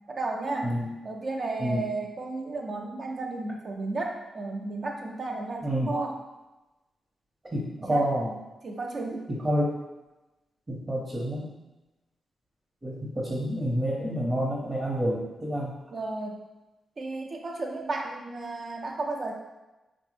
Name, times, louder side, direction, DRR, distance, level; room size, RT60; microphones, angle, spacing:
voice 1, 0.1-0.7 1.0-6.2 7.8-8.1 8.6-9.3 15.9-16.4 17.0-19.3, right 3 dB, 55° right, 1 dB, 0.4 m, -33 dB
voice 2, 5.6-5.9 7.5-8.3 9.4-9.7 10.7-11.5 12.8-15.7, equal, 30° right, -4 dB, 0.8 m, -28 dB
3.4 x 2.0 x 3.2 m, 1.0 s
supercardioid pair, 45°, 0 cm